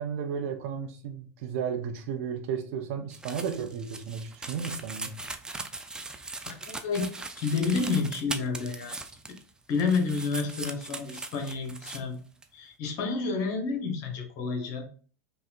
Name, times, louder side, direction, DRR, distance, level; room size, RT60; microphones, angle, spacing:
voice 1, 0.0-5.1, right 7 dB, 55° right, 0.8 m, -33 dB
Sissors Cutting Paper, 3.1-9.5 9.7-12.0 12.4-12.5, right 3 dB, 10° right, 0.4 m, -40 dB
voice 2, 6.5-7.1 7.4-9.0 9.7-12.2 12.5-14.9, left 4 dB, 50° left, 1.0 m, -30 dB
5.4 x 2.3 x 2.5 m
figure-of-eight pair, 85°, 9 cm